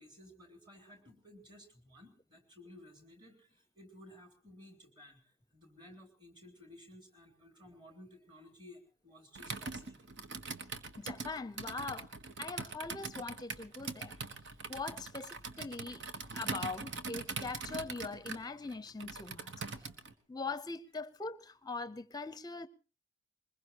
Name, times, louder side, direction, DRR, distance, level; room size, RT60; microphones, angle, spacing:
voice 1, 0.0-5.2 5.5-10.1 19.5-19.7, left 1 dB, 25° right, 3.7 m, -56 dB
Computer keyboard, 9.4-20.1, right 4 dB, 65° right, 1.3 m, -42 dB
voice 2, 11.0-12.1 12.4-14.1 14.7-16.0 16.3-19.5 20.3-22.7, left 3 dB, 20° left, 0.7 m, -42 dB
22.5 x 20.5 x 3.0 m
head